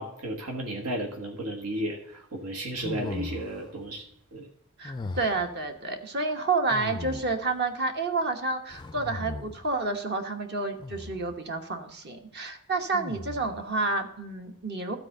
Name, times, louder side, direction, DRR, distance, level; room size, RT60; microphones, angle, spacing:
voice 1, 0.0-4.0 4.3-4.5, right 1 dB, 90° right, 2 dB, 1.5 m, -33 dB
sound 1, 2.8-3.7 4.8-5.6 6.7-7.5 8.7-9.7 10.8-11.3 12.9-13.6, left 3 dB, 20° left, 0.3 m, -38 dB
voice 2, 4.8-15.0, right 3 dB, 45° right, 5 dB, 1.1 m, -29 dB
13.0 x 4.4 x 6.5 m, 0.77 s
head